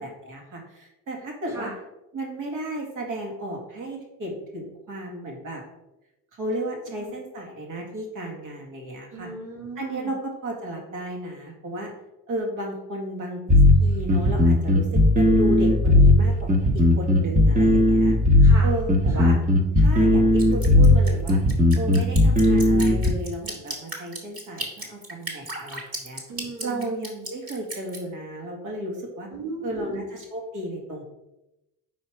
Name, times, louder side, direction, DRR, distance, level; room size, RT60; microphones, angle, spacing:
voice 1, 0.0-1.7 2.1-5.6 6.4-9.3 9.8-11.9 12.3-13.4 13.8-16.5 16.7-18.1 18.6-19.4 19.8-21.4 21.7-26.2 26.6-29.3 29.6-31.0, right 1 dB, 70° right, 0 dB, 2.1 m, -33 dB
voice 2, 9.1-10.1 18.4-18.7 19.1-19.3 26.3-26.9 29.3-29.9, right 3 dB, 90° right, -4 dB, 1.4 m, -37 dB
sound 1, 13.5-23.1, left 1 dB, 25° right, 1.1 m, -17 dB
Drip, 20.4-28.0, right 1 dB, 45° right, 2.0 m, -35 dB
5.6 x 4.7 x 4.6 m, 0.94 s
supercardioid pair, 75°, 33 cm